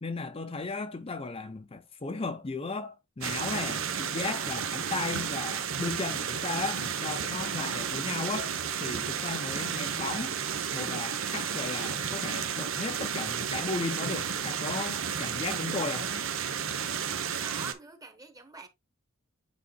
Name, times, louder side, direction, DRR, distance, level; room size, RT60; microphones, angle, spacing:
voice 1, 0.0-8.5 8.8-10.4 10.7-16.1, left 3 dB, 30° left, 0.6 m, -35 dB
sound 1, 3.2-17.7, right 7 dB, 80° right, 0.9 m, -32 dB
voice 2, 17.4-18.7, right 2 dB, 20° right, 1.1 m, -45 dB
8.4 x 5.0 x 2.3 m
head